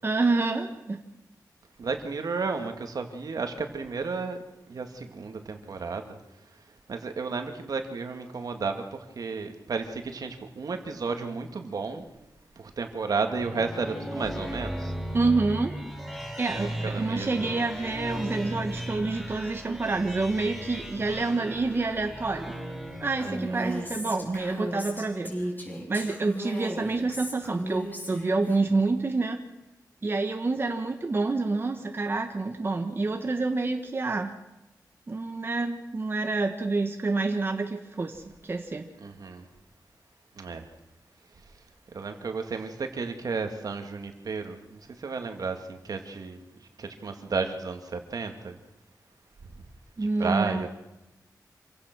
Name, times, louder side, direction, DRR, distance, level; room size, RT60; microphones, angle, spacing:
voice 1, 0.0-1.0 15.1-15.7 16.4-22.6 23.0-25.5 25.9-29.4 30.0-34.3 35.1-38.9 50.0-50.7, right 3 dB, 35° right, 5 dB, 1.3 m, -28 dB
voice 2, 1.8-4.4 4.7-6.2 6.9-12.0 12.6-14.9 16.5-17.3 23.3-23.6 39.0-39.5 40.4-40.7 41.9-46.4 46.8-48.6 49.6-49.7 50.0-50.7, right 4 dB, 65° right, 6 dB, 2.2 m, -33 dB
sound 1, 13.4-24.0, equal, 5° left, 6.9 m, -36 dB
Female speech woman speaking, 23.2-28.6, equal, 25° left, 5.5 m, -35 dB
26.5 x 16.5 x 6.2 m, 0.94 s
wide cardioid pair, 150°, 7 cm